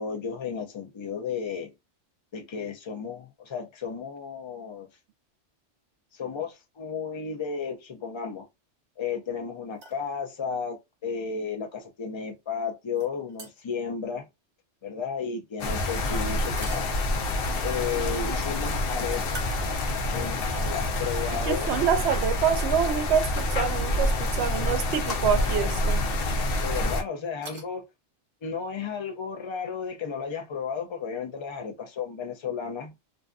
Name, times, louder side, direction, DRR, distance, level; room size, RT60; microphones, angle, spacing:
voice 1, 0.0-1.7 2.3-4.9 6.1-8.5 9.0-14.3 14.8-17.0 17.6-19.6 20.1-21.8 26.6-27.8 28.4-32.9, left 6 dB, 45° left, 0.4 m, -33 dB
sound 1, 9.7-10.1 12.9-13.8 16.4-17.4 19.2-20.2 20.7-20.8 22.3-22.4 23.6-23.8 24.8-25.0 25.3-25.4 27.2-27.7, right 2 dB, 55° right, 1.1 m, -45 dB
sound 2, 15.6-27.0, left 1 dB, 60° left, 0.7 m, -27 dB
voice 2, 21.4-26.0, right 8 dB, 70° right, 0.8 m, -26 dB
2.6 x 2.5 x 2.2 m
omnidirectional pair, 1.2 m